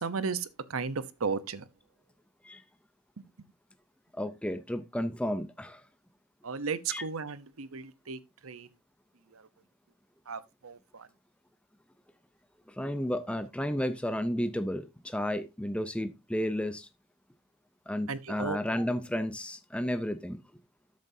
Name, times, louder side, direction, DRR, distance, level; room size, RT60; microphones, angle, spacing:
voice 1, 0.0-1.6 6.4-8.2 8.4-8.7 10.3-10.8 18.1-18.6, right 5 dB, 85° right, 0.9 m, -34 dB
voice 2, 4.1-5.8 6.9-7.1 12.7-16.9 17.9-20.4, equal, 5° left, 0.6 m, -32 dB
13.0 x 7.5 x 2.7 m
head